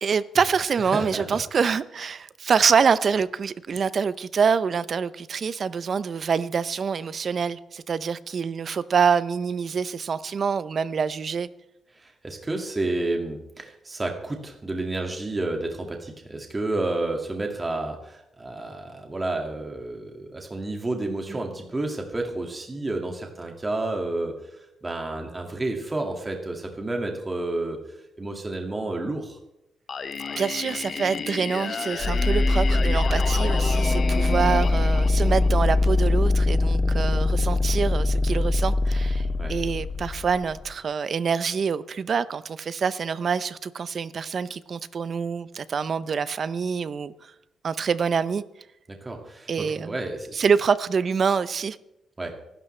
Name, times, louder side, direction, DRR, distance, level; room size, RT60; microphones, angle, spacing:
voice 1, 0.0-11.5 21.3-21.4 30.4-47.3 47.6-48.4 49.5-50.0 50.3-51.8, right 6 dB, 50° right, 0.6 m, -25 dB
voice 2, 0.9-1.4 11.9-24.6 24.8-27.8 28.2-29.4 34.3-34.6 39.4-39.5 49.0-50.4 52.2-52.3, right 2 dB, 20° right, 2.1 m, -30 dB
Singing, 29.9-35.8, left 5 dB, 50° left, 1.1 m, -32 dB
sound 1, 32.0-40.7, left 2 dB, 25° left, 0.5 m, -22 dB
24.5 x 12.0 x 3.3 m
cardioid pair, 105°, 0 cm